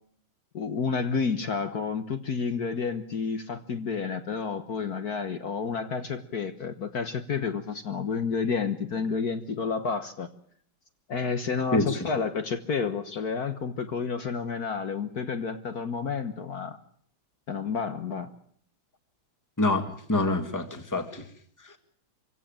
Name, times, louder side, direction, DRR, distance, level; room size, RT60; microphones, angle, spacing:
voice 1, 0.5-10.3 11.1-16.8 17.5-18.3, left 5 dB, 55° left, 8 dB, 1.6 m, -30 dB
voice 2, 19.6-21.2, left 2 dB, 10° left, 8 dB, 1.7 m, -26 dB
25.0 x 16.5 x 8.8 m, 0.62 s
omnidirectional pair, 2.2 m